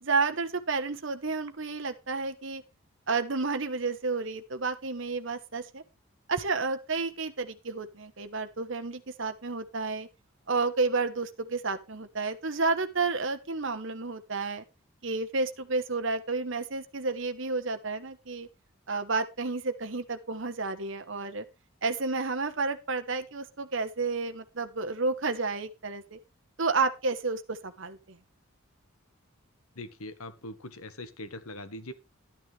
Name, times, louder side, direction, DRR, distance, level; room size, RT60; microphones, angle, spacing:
voice 1, 0.0-2.6 3.1-5.8 6.3-10.1 10.5-14.6 15.0-18.5 18.9-21.4 21.8-26.2 26.6-28.2, right 4 dB, 60° right, 8 dB, 1.1 m, -31 dB
voice 2, 29.7-31.9, left 1 dB, 85° left, 12 dB, 1.5 m, -41 dB
11.5 x 9.5 x 3.3 m, 0.26 s
head